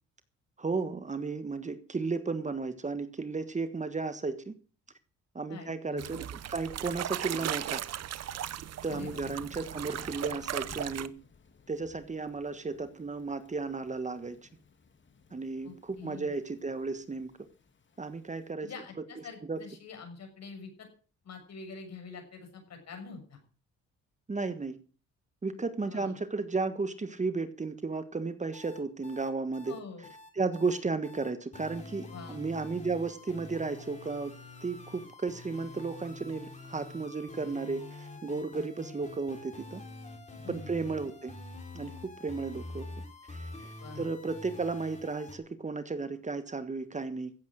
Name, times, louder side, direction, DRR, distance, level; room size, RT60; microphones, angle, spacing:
voice 1, 0.6-4.5 5.3-7.8 8.8-11.1 11.7-14.5 15.3-17.3 18.0-18.7 19.4-19.6 24.3-24.8 25.4-29.7 30.3-34.3 34.6-39.8 40.5-41.4 41.7-42.9 43.3-47.3, right 4 dB, 25° right, 11 dB, 1.4 m, -34 dB
voice 2, 5.5-6.2 8.9-9.3 15.6-16.3 18.6-20.9 21.2-23.4 25.8-26.2 29.7-30.1 32.1-32.4 40.4-40.9 43.8-44.0, left 5 dB, 60° left, 4 dB, 6.8 m, -46 dB
sound 1, 6.0-11.1, right 10 dB, 55° right, 0.9 m, -37 dB
Thunder / Rain, 8.9-18.5, left 5 dB, 40° left, 2.5 m, -56 dB
sound 2, 28.5-45.4, left 2 dB, 25° left, 4.6 m, -46 dB
15.0 x 8.5 x 6.3 m, 0.39 s
cardioid pair, 90°, 30 cm